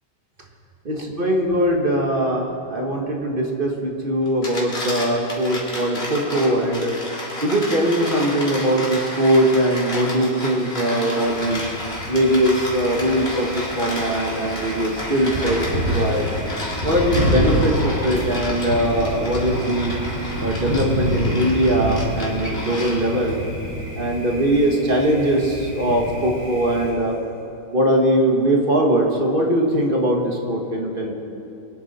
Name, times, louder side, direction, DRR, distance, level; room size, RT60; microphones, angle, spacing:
voice 1, 0.8-6.9 7.4-11.6 12.1-15.7 15.9-16.2 16.8-19.9 20.4-23.4 24.0-27.1 27.7-31.1, right 1 dB, 30° right, 0 dB, 1.6 m, -21 dB
sound 1, 4.2-23.3, left 1 dB, 35° left, 2.7 m, -32 dB
Thunder, 11.2-26.9, equal, 45° right, 3.9 m, -28 dB
24.0 x 10.0 x 4.2 m, 2.8 s
omnidirectional pair, 1.9 m